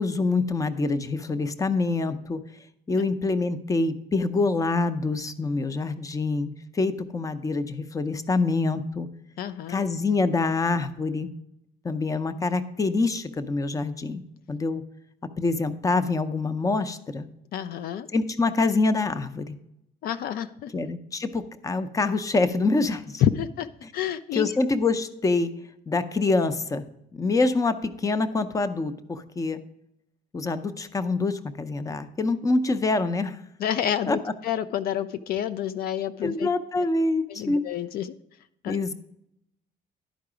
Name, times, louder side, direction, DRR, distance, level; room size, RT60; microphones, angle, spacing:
voice 1, 0.0-2.4 2.9-9.1 9.7-11.3 11.8-14.2 14.5-14.8 15.4-17.3 18.1-19.6 20.7-23.2 24.4-25.5 25.9-29.6 30.3-33.4 34.1-34.2 36.2-37.6 38.7-38.9, left 3 dB, 20° left, 12 dB, 0.6 m, -25 dB
voice 2, 9.4-9.8 17.5-18.1 20.0-20.7 23.2-23.7 23.9-24.6 33.6-36.5 36.8-36.9 37.3-38.1 38.6-38.8, left 10 dB, 65° left, 13 dB, 0.4 m, -28 dB
11.5 x 4.7 x 4.9 m, 0.81 s
cardioid pair, 110°, 17 cm